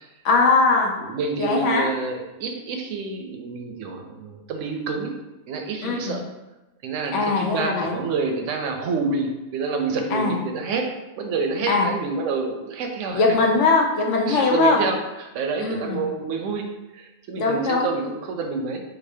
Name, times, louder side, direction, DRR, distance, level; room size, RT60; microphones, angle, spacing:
voice 1, 0.2-0.9 1.4-1.9 5.8-6.2 7.1-8.0 10.1-10.4 11.7-11.9 13.1-14.8 15.6-16.0 17.4-17.9, left 3 dB, 70° left, 1 dB, 0.9 m, -20 dB
voice 2, 1.0-5.1 5.5-6.2 6.8-10.9 11.2-13.2 14.3-16.7 16.9-18.8, right 4 dB, 70° right, 3 dB, 0.9 m, -28 dB
4.1 x 2.7 x 2.7 m, 1.0 s
omnidirectional pair, 1.3 m